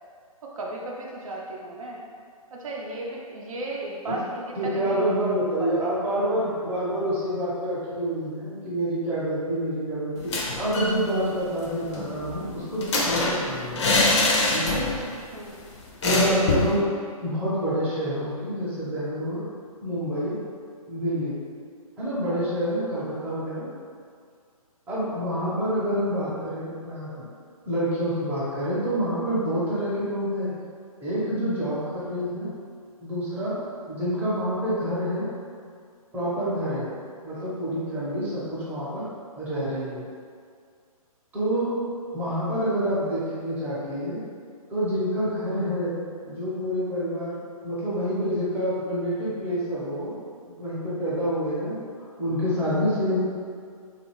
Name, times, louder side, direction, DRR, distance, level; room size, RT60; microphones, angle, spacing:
voice 1, 0.4-2.0 2.5-5.1 5.6-5.9 15.3-15.6 22.2-22.4, right 1 dB, 65° right, -2 dB, 0.5 m, -35 dB
voice 2, 4.6-10.3 10.6-14.0 14.5-14.9 16.0-16.9 17.2-19.5 19.8-20.4 20.9-21.4 22.0-23.7 24.9-27.3 27.6-30.5 31.0-32.5 33.0-33.6 33.9-35.3 36.1-36.9 37.2-39.0 39.4-40.1 41.3-41.8 42.1-44.2 44.7-46.0 46.2-47.4 47.6-50.1 50.5-51.8 52.2-53.2, equal, 10° right, -10 dB, 0.6 m, -27 dB
sound 1, 10.2-11.0 11.3-11.4 11.6-15.1 15.4-15.5 16.0-16.8, left 2 dB, 50° left, 0.6 m, -24 dB
2.5 x 2.4 x 2.9 m, 2.2 s
hypercardioid pair, 140°, 19 cm